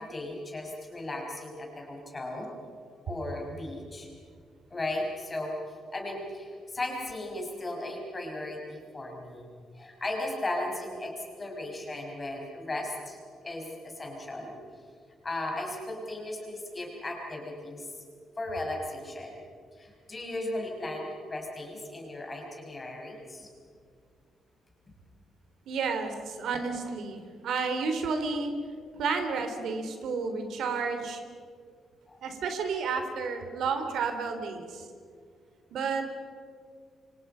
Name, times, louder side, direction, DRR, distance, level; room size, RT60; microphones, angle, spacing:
voice 1, 0.0-2.5 3.1-4.1 4.7-9.5 9.7-13.2 13.4-14.5 15.2-17.9 18.4-19.4 19.8-23.5 32.1-32.2, left 1 dB, 20° left, 0 dB, 5.8 m, -36 dB
voice 2, 25.7-28.5 29.0-31.2 32.2-34.9 35.7-36.2, right 5 dB, 65° right, 6 dB, 3.3 m, -31 dB
28.5 x 25.5 x 5.7 m, 2.2 s
cardioid pair, 165°, 0 cm